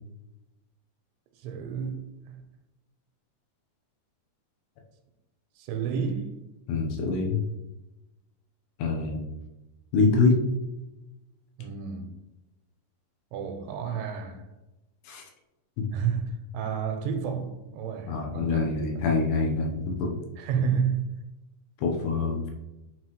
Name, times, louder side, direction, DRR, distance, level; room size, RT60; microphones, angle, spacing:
voice 1, 1.4-2.4 5.6-6.3 11.6-12.2 13.3-14.5 15.9-18.6 20.4-21.2, right 6 dB, 90° right, 3.1 m, -31 dB
voice 2, 6.7-7.4 8.8-9.2 9.9-10.4 15.1-15.2 15.8-15.9 18.1-20.1 21.8-22.5, left 4 dB, 80° left, 3.1 m, -25 dB
8.6 x 3.8 x 3.1 m
omnidirectional pair, 5.2 m